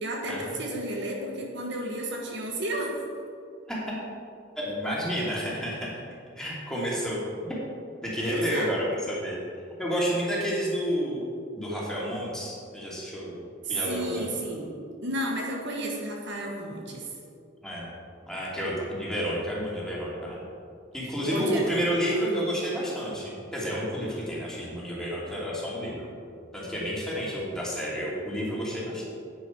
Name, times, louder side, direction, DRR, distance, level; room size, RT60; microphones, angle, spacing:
voice 1, 0.0-3.0 8.3-8.8 13.6-14.7 15.0-17.1 21.2-22.3, right 1 dB, 65° right, 0 dB, 1.6 m, -32 dB
voice 2, 4.6-6.0 6.4-7.5 8.0-9.4 9.8-11.3 11.6-13.4 13.7-14.3 17.6-17.9 18.3-20.4 20.9-26.1 26.5-29.1, equal, 5° left, -6 dB, 2.8 m, -30 dB
10.5 x 9.2 x 4.7 m, 2.4 s
head